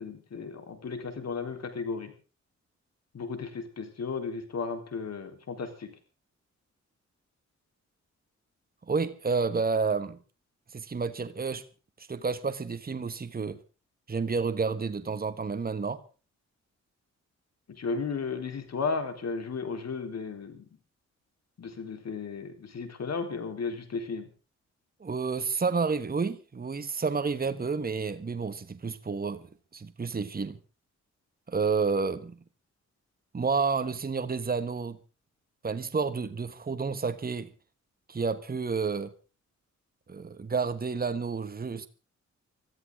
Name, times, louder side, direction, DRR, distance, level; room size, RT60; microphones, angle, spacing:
voice 1, 0.0-2.1 3.1-5.9 17.7-20.6 21.6-24.3, left 4 dB, 60° left, 3.9 m, -34 dB
voice 2, 8.9-10.2 10.7-11.6 12.0-13.6 14.1-16.0 25.0-29.4 29.7-30.6 31.5-32.4 33.3-35.0 35.6-37.5 38.1-39.1 40.1-41.9, right 5 dB, 30° right, 1.3 m, -30 dB
23.5 x 14.0 x 3.7 m
cardioid pair, 65°, 29 cm